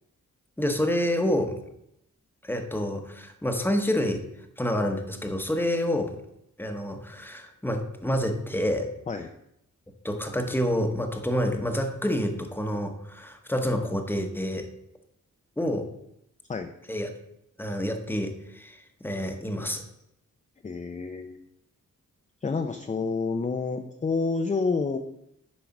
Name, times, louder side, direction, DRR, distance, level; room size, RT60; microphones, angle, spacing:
voice 1, 0.6-1.6 2.4-4.3 4.6-6.2 6.6-8.9 10.0-14.7 15.6-15.9 16.9-17.1 17.6-19.8, equal, 5° left, 5 dB, 1.0 m, -28 dB
voice 2, 20.6-21.4 22.4-25.0, left 4 dB, 25° left, 6 dB, 0.5 m, -29 dB
10.5 x 4.8 x 5.9 m, 0.79 s
wide cardioid pair, 155°, 31 cm